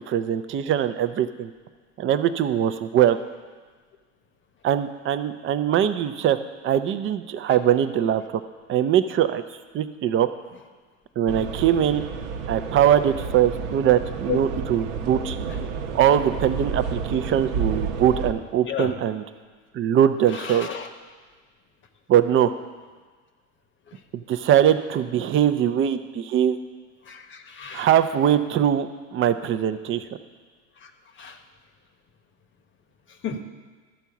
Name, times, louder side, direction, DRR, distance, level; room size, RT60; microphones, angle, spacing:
voice 1, 0.1-1.5 2.0-3.2 4.6-6.4 6.6-8.2 8.7-9.4 9.7-10.3 11.2-12.0 12.5-15.4 15.9-19.2 19.7-20.7 22.1-22.5 24.1-26.6 27.7-30.0, right 10 dB, 30° right, 11 dB, 0.6 m, -21 dB
sound 1, 11.3-18.3, right 5 dB, 70° right, 1.0 m, -31 dB
voice 2, 20.3-20.9 27.1-27.9 30.8-30.9 31.2-31.4 33.2-33.4, left 7 dB, 30° left, 7 dB, 1.1 m, -32 dB
13.0 x 4.6 x 7.1 m, 1.5 s
hypercardioid pair, 95°, 40 cm